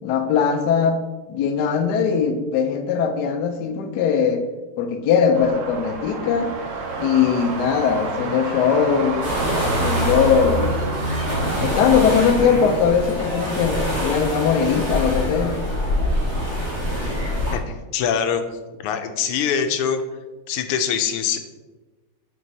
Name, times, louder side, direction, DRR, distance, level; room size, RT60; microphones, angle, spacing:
voice 1, 0.0-1.0 1.3-4.4 4.8-6.5 7.0-9.3 9.6-10.8 11.6-15.6, left 6 dB, 70° left, 5 dB, 1.0 m, -20 dB
sound 1, 5.3-12.7, right 2 dB, 90° right, 0.7 m, -28 dB
sound 2, 9.2-17.5, equal, 35° right, 1.9 m, -25 dB
voice 2, 17.5-18.4 18.8-20.0 20.5-21.4, left 7 dB, 90° left, 8 dB, 1.5 m, -23 dB
7.6 x 5.3 x 2.7 m, 1.2 s
omnidirectional pair, 2.4 m